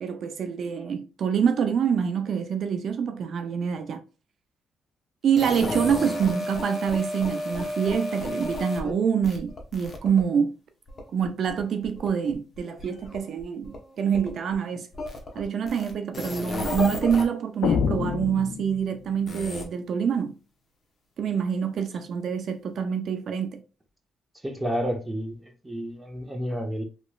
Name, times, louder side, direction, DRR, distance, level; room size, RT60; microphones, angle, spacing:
voice 1, 0.0-4.0 5.2-10.6 11.1-14.9 15.4-20.3 21.2-23.6, right 7 dB, 60° right, 0.4 m, -26 dB
sound 1, 5.4-8.9 9.2-10.2 10.9-14.5 14.9-17.2 19.3-19.6, left 1 dB, 35° left, 0.9 m, -33 dB
sound 2, 17.6-19.2, left 7 dB, 80° left, 0.3 m, -27 dB
voice 2, 24.4-26.8, equal, 10° right, 0.9 m, -30 dB
3.0 x 3.0 x 2.3 m
cardioid pair, 90°, 0 cm